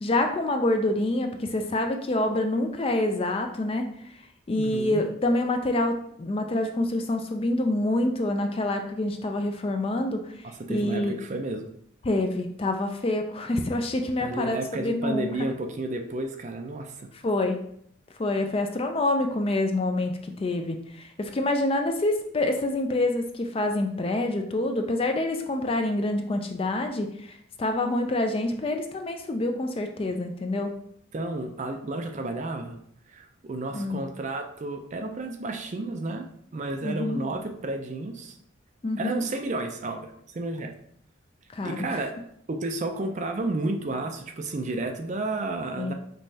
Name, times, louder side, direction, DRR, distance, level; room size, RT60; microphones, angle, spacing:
voice 1, 0.0-3.9 4.5-10.2 10.7-11.2 12.0-15.3 17.1-17.6 18.2-30.7 33.7-34.1 36.8-37.2 38.8-39.2 41.5-42.0 45.7-45.9, left 2 dB, 30° left, 5 dB, 0.4 m, -27 dB
voice 2, 4.6-5.0 10.4-11.7 14.2-17.1 30.6-30.7 31.1-32.8 33.1-36.3 36.5-38.4 39.0-40.0 40.3-40.7 41.6-42.2 42.5-45.9, right 2 dB, 35° right, 5 dB, 0.4 m, -32 dB
5.3 x 3.1 x 2.7 m, 0.67 s
head